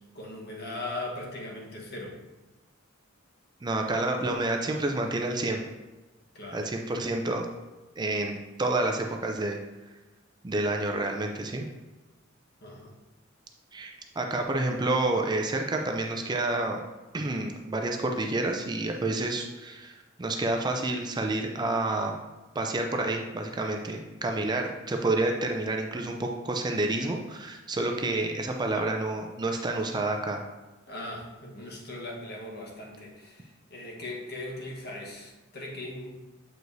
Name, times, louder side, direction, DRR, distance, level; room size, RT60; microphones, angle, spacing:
voice 1, 0.1-2.2 6.3-6.7 12.6-12.9 30.9-36.1, left 2 dB, 50° left, -2 dB, 1.2 m, -39 dB
voice 2, 3.6-5.6 6.5-7.5 8.0-9.6 10.4-11.6 13.7-16.8 17.1-22.1 22.5-30.4, right 2 dB, 20° right, 2 dB, 0.4 m, -29 dB
7.8 x 4.7 x 2.7 m, 1.1 s
head